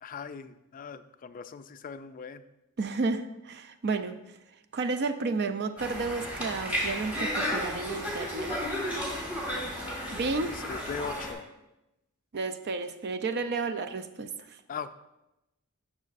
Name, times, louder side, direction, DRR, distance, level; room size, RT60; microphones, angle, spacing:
voice 1, 0.0-2.4 10.5-11.4 14.7-14.9, left 6 dB, 40° left, 12 dB, 0.3 m, -40 dB
voice 2, 2.8-4.2 4.7-8.6 10.1-10.5 12.3-14.3, right 3 dB, 50° right, 10 dB, 0.5 m, -31 dB
Conversation, 5.8-11.3, equal, 10° right, 1.9 m, -33 dB
10.5 x 6.2 x 2.5 m, 0.94 s
head